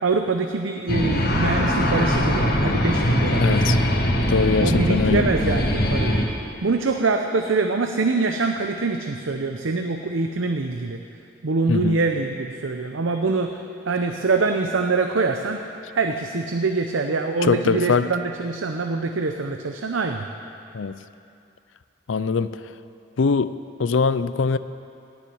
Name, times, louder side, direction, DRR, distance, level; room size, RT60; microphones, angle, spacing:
voice 1, 0.0-3.7 4.6-6.2 6.6-11.0 11.4-13.5 13.9-15.6 15.9-20.3, right 3 dB, 85° right, 5 dB, 0.7 m, -24 dB
sound 1, 0.9-6.3, equal, 50° left, 1.6 m, -21 dB
voice 2, 3.4-3.8 4.3-5.3 11.7-12.0 17.4-18.1 20.7-21.0 22.1-22.6 23.2-23.5 23.8-24.6, left 5 dB, 80° left, 14 dB, 0.5 m, -22 dB
17.0 x 7.2 x 9.4 m, 2.6 s
head